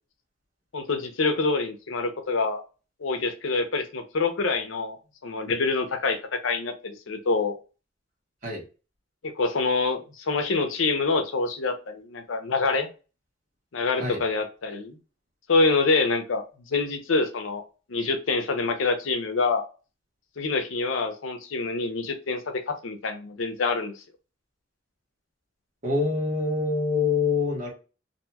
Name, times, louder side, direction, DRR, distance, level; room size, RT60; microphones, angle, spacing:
voice 1, 0.7-2.6 3.0-5.0 5.2-7.6 9.2-12.9 13.7-15.0 15.5-17.6 17.9-19.7 20.4-24.0, left 3 dB, 90° left, 7 dB, 0.6 m, -26 dB
voice 2, 25.8-27.7, left 4 dB, 40° right, -3 dB, 1.2 m, -25 dB
2.9 x 2.6 x 2.2 m, 0.33 s
head